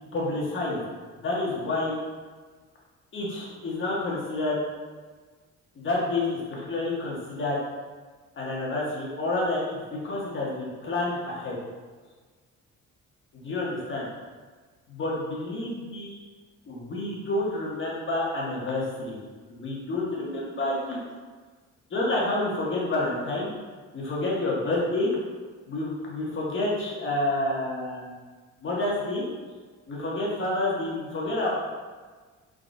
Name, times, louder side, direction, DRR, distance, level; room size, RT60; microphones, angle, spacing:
voice 1, 0.1-0.8 1.2-2.0 3.1-4.6 5.7-7.6 8.4-11.6 13.3-14.1 14.9-16.1 16.7-19.2 19.5-21.0 21.9-23.5 23.9-25.1 25.7-28.2 28.6-29.2 29.9-31.5, left 2 dB, 40° left, -5 dB, 1.1 m, -29 dB
3.6 x 3.0 x 2.5 m, 1.4 s
cardioid pair, 90°, 30 cm